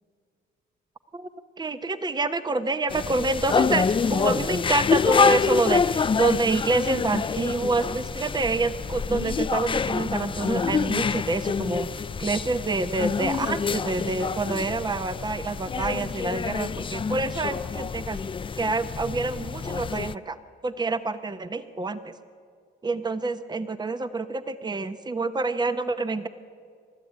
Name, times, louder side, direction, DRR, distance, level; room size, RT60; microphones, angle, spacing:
voice 1, 1.6-18.2 18.6-20.4 20.6-22.2 22.8-26.3, right 3 dB, 20° right, 11 dB, 0.9 m, -27 dB
sound 1, 2.9-20.1, left 5 dB, 25° left, 0.4 m, -27 dB
27.5 x 13.0 x 8.8 m, 2.2 s
cardioid pair, 90°, 20 cm